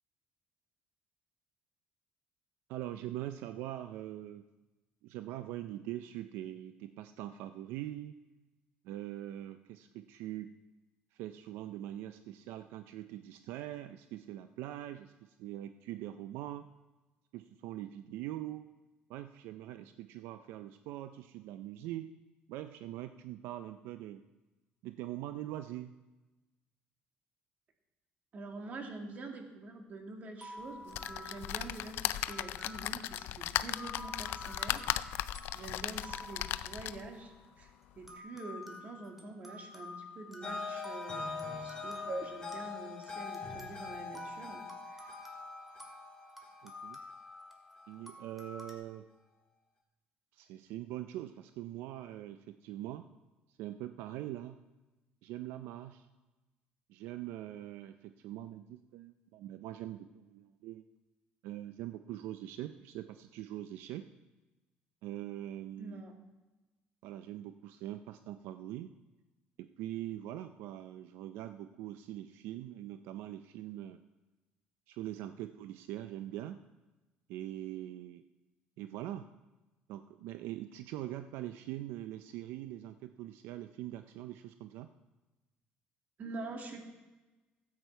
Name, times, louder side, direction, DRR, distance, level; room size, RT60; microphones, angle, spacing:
voice 1, 2.7-4.4 5.0-8.2 8.8-10.5 11.1-16.7 17.3-18.7 19.1-22.1 22.5-24.2 24.8-25.9 46.6-47.0 47.9-49.0 50.3-53.1 53.5-54.6 55.2-56.1 56.9-60.8 61.4-64.1 65.0-66.0 67.0-68.9 69.6-74.0 74.9-76.6 77.3-78.2 78.8-79.3 79.9-84.9, right 13 dB, 85° right, 10 dB, 0.4 m, -43 dB
voice 2, 28.3-35.3 35.5-45.1 65.8-66.1 78.8-78.9 86.2-86.8, right 2 dB, 45° right, 3 dB, 2.1 m, -46 dB
sound 1, 30.4-37.5 38.1-48.7, left 2 dB, 5° right, 2.0 m, -50 dB
sound 2, 30.9-37.1 37.7-37.8 38.0-38.1, left 14 dB, 75° left, 0.4 m, -37 dB
sound 3, 40.4-47.6, left 4 dB, 20° left, 2.8 m, -43 dB
13.5 x 8.6 x 4.5 m, 1.1 s
cardioid pair, 100°, 4 cm